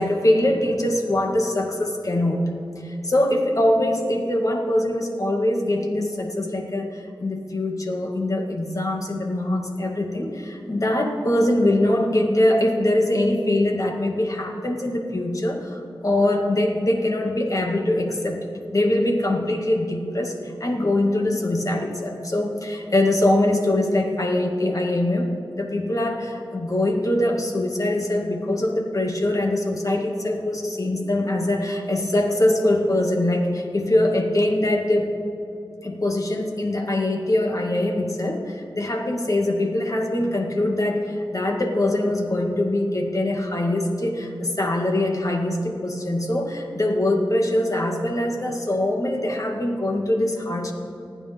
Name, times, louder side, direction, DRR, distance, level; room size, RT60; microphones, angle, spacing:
voice 1, 0.0-2.5 2.8-18.4 18.7-20.3 20.6-35.1 35.8-50.7, left 1 dB, 45° left, 2 dB, 2.0 m, -23 dB
26.5 x 9.6 x 3.6 m, 2.7 s
cardioid pair, 55°, 8 cm